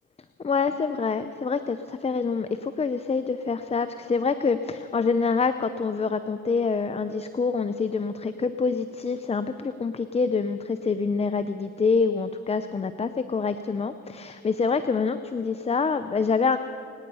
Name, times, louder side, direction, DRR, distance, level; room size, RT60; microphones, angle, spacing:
voice 1, 0.4-16.6, left 5 dB, 20° left, 10 dB, 0.5 m, -26 dB
25.0 x 9.7 x 5.5 m, 2.6 s
cardioid pair, 90°, 30 cm